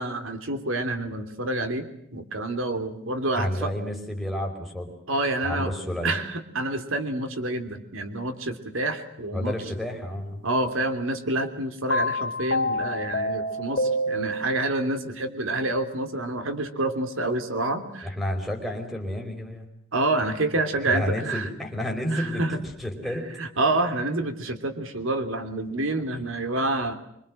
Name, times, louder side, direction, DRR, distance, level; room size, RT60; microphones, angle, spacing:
voice 1, 0.0-3.7 5.1-5.7 6.0-9.5 10.4-18.1 19.9-21.5 22.1-22.6 23.4-27.0, right 2 dB, 85° right, 8 dB, 3.2 m, -28 dB
voice 2, 3.3-4.9 5.4-6.1 9.3-10.4 18.0-19.7 20.9-23.2, left 1 dB, ahead, 1 dB, 5.1 m, -30 dB
sound 1, 11.9-14.7, left 1 dB, 55° left, 3.1 m, -27 dB
25.5 x 25.0 x 7.7 m, 0.74 s
head